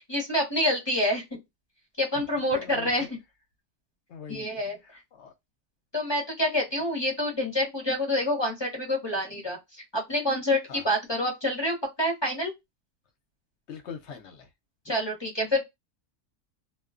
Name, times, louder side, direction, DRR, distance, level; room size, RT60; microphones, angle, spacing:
voice 1, 0.0-1.4 2.0-3.2 4.3-4.8 5.9-12.5 14.8-15.6, left 1 dB, 25° left, 0.6 m, -27 dB
voice 2, 2.5-2.9 4.1-4.5 4.8-5.3 10.7-10.8 13.7-14.5, left 6 dB, 60° left, 0.8 m, -42 dB
2.3 x 2.3 x 2.4 m
omnidirectional pair, 1.6 m